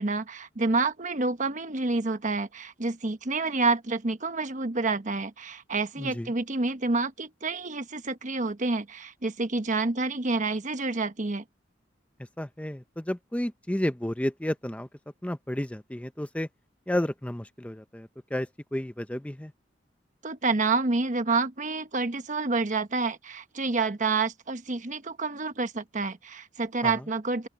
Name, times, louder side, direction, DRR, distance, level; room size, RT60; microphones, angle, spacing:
voice 1, 0.0-11.4 20.2-27.5, right 3 dB, 45° right, 1.2 m, -28 dB
voice 2, 6.0-6.3 12.4-14.9 15.2-16.5 16.9-19.5 26.8-26.9, left 1 dB, 5° left, 0.6 m, -32 dB
open air
head